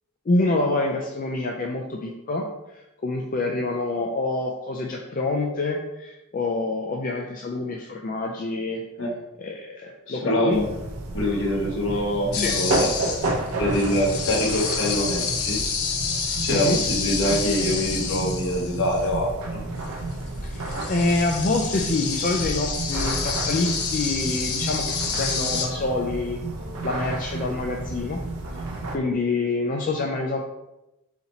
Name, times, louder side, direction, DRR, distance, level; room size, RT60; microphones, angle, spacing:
voice 1, 0.3-8.8 9.4-10.6 12.3-12.5 16.5-16.8 20.4-26.4 26.8-28.2 28.9-30.4, left 2 dB, 40° left, 0 dB, 0.4 m, -26 dB
voice 2, 10.1-10.7 11.1-12.9 13.6-15.6 16.4-19.6, left 1 dB, 65° left, -2 dB, 1.1 m, -24 dB
sound 1, 10.5-29.0, right 2 dB, 80° right, 0.6 m, -31 dB
sound 2, 12.3-19.1 20.1-20.2 20.5-25.7, left 5 dB, 85° left, 0.7 m, -29 dB
4.0 x 2.9 x 4.1 m, 0.94 s
head